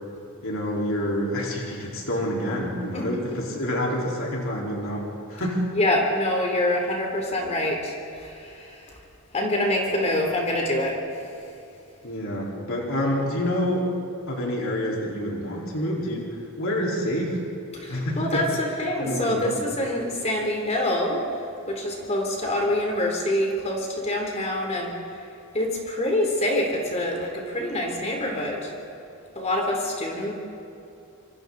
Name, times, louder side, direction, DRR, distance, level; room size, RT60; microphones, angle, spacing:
voice 1, 0.4-5.0 5.3-5.7 12.0-13.9 14.3-16.3 16.6-17.4 17.9-18.5 19.0-19.6, equal, 70° left, -3 dB, 4.3 m, -27 dB
voice 2, 5.7-8.8 9.3-11.0 17.7-21.2 21.7-24.9 25.5-28.7 29.3-30.3, left 1 dB, 30° left, 0 dB, 3.3 m, -26 dB
26.5 x 25.0 x 4.1 m, 2.7 s
head